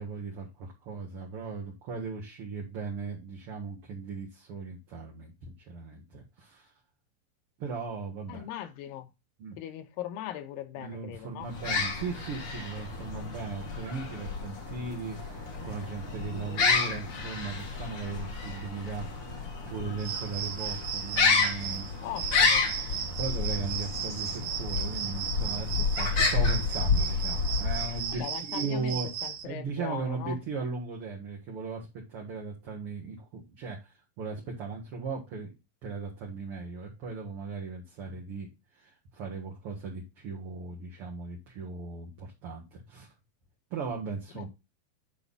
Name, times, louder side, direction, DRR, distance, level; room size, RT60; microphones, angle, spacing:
voice 1, 0.0-6.7 7.6-8.5 9.4-9.6 10.8-19.4 19.7-22.0 22.8-28.2 28.5-29.1 29.4-35.5 35.8-43.1 43.7-44.5, right 4 dB, 50° right, 2.1 m, -38 dB
voice 2, 8.3-9.1 9.6-11.5 22.0-22.7 28.1-29.0 29.2-30.4 44.3-44.5, left 12 dB, 80° left, 2.7 m, -39 dB
sound 1, 11.5-28.2, left 4 dB, 45° left, 2.6 m, -30 dB
sound 2, 20.0-29.4, right 8 dB, 70° right, 2.5 m, -36 dB
10.5 x 3.6 x 5.4 m
omnidirectional pair, 4.1 m